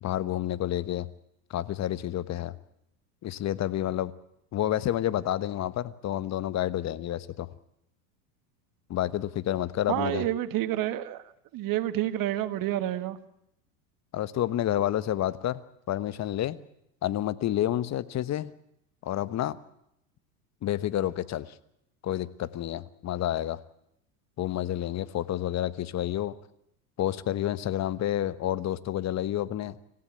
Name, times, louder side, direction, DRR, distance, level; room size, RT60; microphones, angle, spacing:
voice 1, 0.0-1.1 1.5-2.5 3.2-4.1 4.5-7.5 8.9-10.2 14.1-15.6 15.9-16.6 17.0-18.5 19.0-19.6 20.6-21.5 22.0-23.6 24.4-26.3 27.0-29.8, left 12 dB, 35° left, 15 dB, 1.2 m, -29 dB
voice 2, 9.9-11.2 11.5-13.2, right 13 dB, 45° right, 13 dB, 1.8 m, -29 dB
26.5 x 15.5 x 8.7 m, 0.78 s
hypercardioid pair, 95°, 47 cm